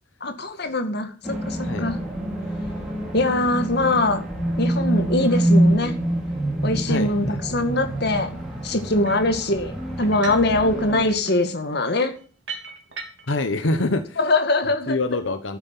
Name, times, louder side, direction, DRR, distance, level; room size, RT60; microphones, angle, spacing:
voice 1, 0.2-2.0 3.1-4.2 4.6-5.9 6.6-7.3 7.5-8.4 8.6-12.1 14.2-15.0, left 2 dB, 60° left, 7 dB, 2.1 m, -22 dB
sound 1, 1.2-11.1, right 1 dB, 5° right, 5.3 m, -25 dB
voice 2, 6.9-7.4 13.3-14.2 14.9-15.6, left 2 dB, 85° left, 9 dB, 1.1 m, -25 dB
sound 2, 9.0-9.4 10.0-10.5 10.8-13.4, right 4 dB, 65° right, 3.3 m, -38 dB
12.5 x 9.9 x 7.3 m, 0.40 s
head